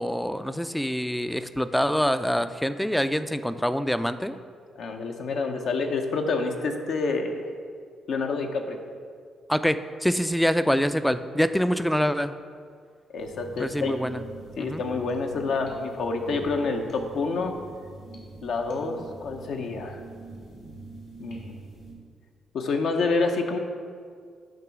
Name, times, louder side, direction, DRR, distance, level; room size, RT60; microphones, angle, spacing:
voice 1, 0.0-4.4 9.5-12.3 13.6-14.2 14.6-14.8, equal, 5° left, 11 dB, 0.4 m, -25 dB
voice 2, 4.8-7.4 8.1-8.8 13.1-13.9 14.6-17.6 18.4-20.0 21.2-21.5 22.5-23.6, left 4 dB, 70° left, 4 dB, 0.7 m, -28 dB
sound 1, 13.2-21.9, right 2 dB, 90° left, 2.0 m, -44 dB
8.9 x 3.0 x 6.1 m, 2.1 s
supercardioid pair, 60°, 0 cm